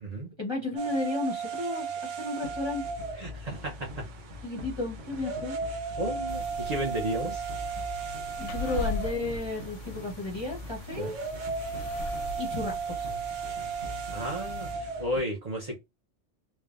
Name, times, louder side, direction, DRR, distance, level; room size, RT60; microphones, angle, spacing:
voice 1, 0.4-2.8 4.4-5.6 8.4-11.2 12.4-13.1, left 2 dB, 30° left, 0.6 m, -33 dB
sound 1, 0.8-15.2, right 5 dB, 85° right, 1.0 m, -36 dB
sound 2, 2.4-15.2, left 3 dB, 60° right, 1.1 m, -44 dB
voice 2, 3.2-4.0 6.0-7.4 11.0-11.1 14.1-15.8, equal, 40° right, 0.6 m, -33 dB
Sitting on bed, 6.3-14.7, left 2 dB, 85° left, 0.9 m, -40 dB
3.2 x 2.1 x 2.4 m
omnidirectional pair, 1.2 m